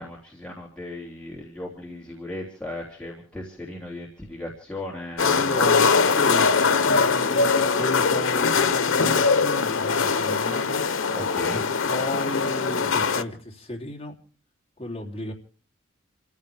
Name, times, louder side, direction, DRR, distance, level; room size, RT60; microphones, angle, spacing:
voice 1, 0.0-5.6 11.1-11.6, left 1 dB, 5° left, -4 dB, 3.0 m, -37 dB
sound 1, 5.2-13.2, left 5 dB, 85° left, 0.9 m, -22 dB
voice 2, 5.2-11.2 11.5-14.1 14.8-15.3, left 1 dB, 30° left, 0 dB, 3.2 m, -34 dB
28.0 x 15.0 x 3.4 m, 0.42 s
head